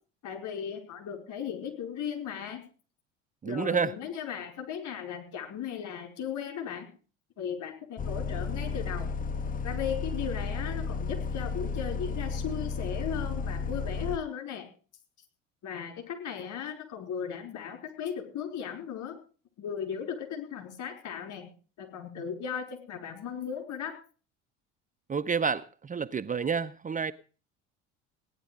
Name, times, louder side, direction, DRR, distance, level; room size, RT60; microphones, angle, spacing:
voice 1, 0.2-2.6 3.4-6.9 7.4-9.1 9.6-14.7 15.6-19.2 19.6-21.5 21.8-24.0, left 8 dB, 55° left, 5.0 m, -36 dB
voice 2, 3.4-3.9 25.1-27.1, right 6 dB, 20° right, 0.7 m, -29 dB
Bus, 8.0-14.2, left 5 dB, 20° left, 0.9 m, -33 dB
17.5 x 10.5 x 5.1 m
hypercardioid pair, 65°, 37 cm